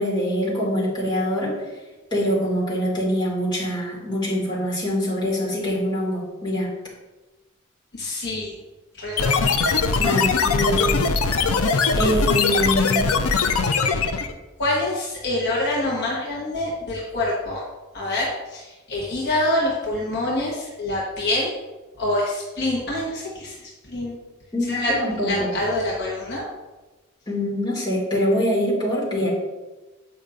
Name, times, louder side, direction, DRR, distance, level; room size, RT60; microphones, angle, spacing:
voice 1, 0.0-1.5 2.1-6.7 10.0-11.0 11.9-13.0 24.5-25.5 27.3-29.3, equal, 20° left, -6 dB, 2.0 m, -24 dB
voice 2, 7.9-8.6 9.0-9.5 14.6-17.6 17.9-21.5 22.0-23.5 23.9-24.2 24.7-24.9 25.2-26.5, left 1 dB, 50° left, -5 dB, 1.1 m, -26 dB
sound 1, 9.2-14.3, left 4 dB, 75° left, 0.5 m, -21 dB
8.0 x 5.4 x 2.5 m, 1.2 s
head